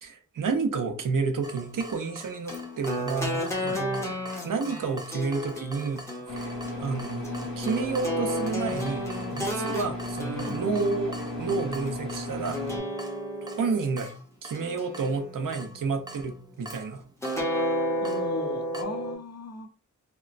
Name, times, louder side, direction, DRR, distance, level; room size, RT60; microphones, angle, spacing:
voice 1, 0.0-3.4 3.8-4.1 4.4-6.5 6.8-12.6 13.4-14.1 14.4-17.0, right 4 dB, 80° right, 0.6 m, -30 dB
Water tap faucet / Drip, 1.4-18.8, right 1 dB, 15° right, 0.3 m, -45 dB
sound 1, 2.5-11.9 12.5-14.1 14.5-15.7 17.2-19.1, equal, 10° left, 0.7 m, -33 dB
sound 2, 6.3-12.8, left 1 dB, 85° left, 1.3 m, -35 dB
voice 2, 18.0-19.7, left 3 dB, 55° left, 0.6 m, -37 dB
2.9 x 2.0 x 2.4 m
wide cardioid pair, 115°, 32 cm